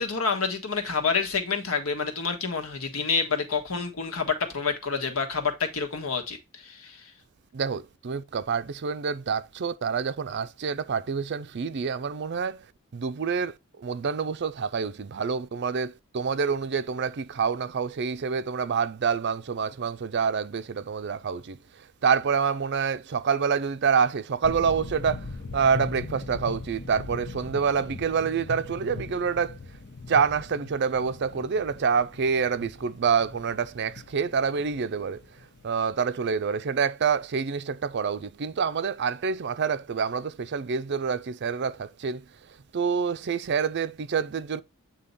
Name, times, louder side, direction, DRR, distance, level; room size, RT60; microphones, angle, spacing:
voice 1, 0.0-7.0, left 5 dB, 75° left, 1.4 m, -28 dB
voice 2, 7.5-12.7 12.9-29.6 30.1-35.2 35.6-44.6, right 6 dB, 50° right, 0.4 m, -27 dB
sound 1, 24.4-35.9, left 3 dB, 50° left, 0.8 m, -40 dB
8.5 x 2.9 x 5.3 m
head